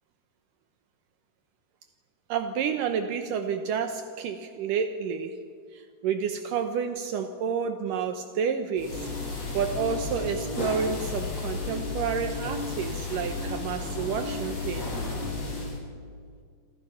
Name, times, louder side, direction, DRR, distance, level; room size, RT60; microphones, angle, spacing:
voice 1, 2.3-5.4 5.7-9.1 9.5-14.9, right 6 dB, 80° right, 6 dB, 1.9 m, -30 dB
sound 1, 8.8-15.8, left 3 dB, 35° left, 7.6 m, -33 dB
28.5 x 26.0 x 5.8 m, 2.1 s
omnidirectional pair, 5.2 m